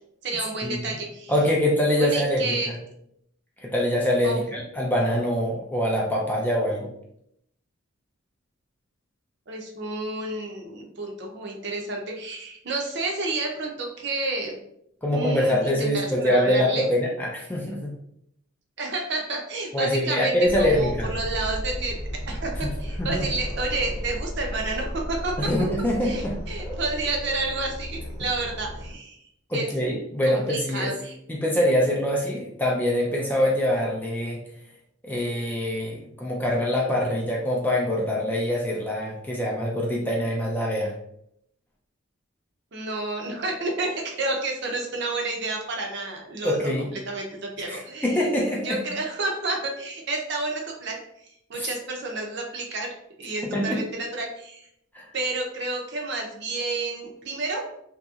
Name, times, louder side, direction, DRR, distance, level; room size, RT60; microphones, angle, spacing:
voice 1, 0.2-1.3 2.0-2.7 4.2-4.4 9.5-14.6 15.1-16.9 18.8-21.9 22.3-25.5 26.0-29.2 29.5-29.7 30.2-31.1 42.7-48.3 48.6-51.0 51.5-54.7 55.1-57.7, right 2 dB, 55° right, 1 dB, 0.6 m, -30 dB
voice 2, 1.3-2.7 3.6-6.9 15.0-17.9 19.7-21.1 22.6-22.7 23.0-23.3 25.4-26.8 29.5-30.9 31.3-34.4 35.0-40.9 46.4-46.9 47.6-48.8 51.5-51.7 53.5-53.9 54.9-55.1, equal, 10° left, -2 dB, 0.3 m, -24 dB
sound 1, 20.4-29.0, equal, 80° left, 0.8 m, -34 dB
2.8 x 2.7 x 2.3 m, 0.74 s
head